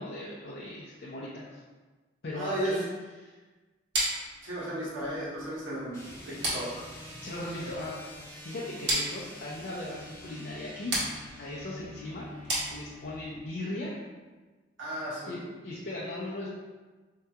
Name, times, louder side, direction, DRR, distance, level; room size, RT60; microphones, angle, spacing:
voice 1, 0.0-1.6 2.2-2.8 3.2-3.3 7.2-8.1 8.4-11.0 11.4-12.2 12.7-14.0 15.3-16.5, left 1 dB, 55° left, -6 dB, 0.5 m, -38 dB
voice 2, 2.3-2.8 4.4-6.0 6.3-6.9 7.6-7.7 14.8-15.3, right 1 dB, 90° right, -7 dB, 1.3 m, -34 dB
sound 1, 3.9-13.3, right 1 dB, 60° right, 1.2 m, -35 dB
sound 2, 5.9-13.4, left 1 dB, 15° left, 0.8 m, -46 dB
4.6 x 2.8 x 2.3 m, 1.3 s
head